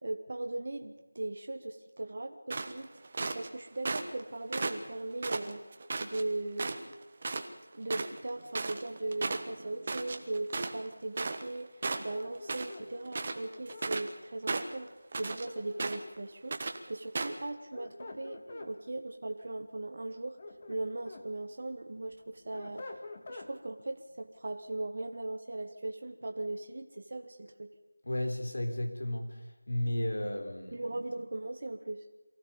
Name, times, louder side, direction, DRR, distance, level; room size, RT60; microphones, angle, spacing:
voice 1, 0.0-5.7 6.0-6.9 7.7-11.7 12.0-16.6 16.9-20.4 20.7-22.9 23.3-27.7 30.7-32.0, right 2 dB, 50° right, 5 dB, 1.4 m, -38 dB
sound 1, 2.5-3.5 3.9-4.2 4.5-6.2 6.6-6.9 7.2-7.5 7.7-11.6 11.8-12.8 13.1-14.1 14.5-15.5 15.8-16.2 16.5-16.8 17.2-17.4, right 3 dB, 35° right, 1.3 m, -35 dB
sound 2, 11.8-13.9 15.2-16.3 17.5-18.7 20.1-21.3 21.7-23.5, left 2 dB, 30° left, 1.8 m, -47 dB
voice 2, 28.0-29.4 29.7-30.8, left 1 dB, 70° left, 5 dB, 3.7 m, -33 dB
24.0 x 15.5 x 7.1 m, 1.1 s
figure-of-eight pair, 170°, 0 cm